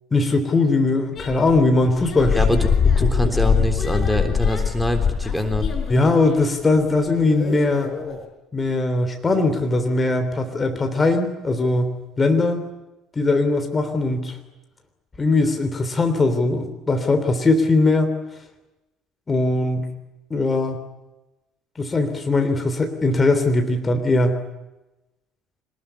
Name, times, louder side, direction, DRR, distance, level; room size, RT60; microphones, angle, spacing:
voice 1, 0.1-2.6 3.0-3.1 5.9-7.9 8.5-12.6 13.1-14.4 15.2-18.1 19.3-19.9 20.3-20.8 21.8-24.4, left 2 dB, 25° left, 6 dB, 3.3 m, -20 dB
sound 1, 1.2-6.4 7.2-8.2, left 6 dB, 40° left, 5.9 m, -22 dB
voice 2, 2.3-2.7 3.0-5.7, left 1 dB, ahead, 6 dB, 3.7 m, -24 dB
25.5 x 20.5 x 9.9 m, 1.0 s
figure-of-eight pair, 60°, 0 cm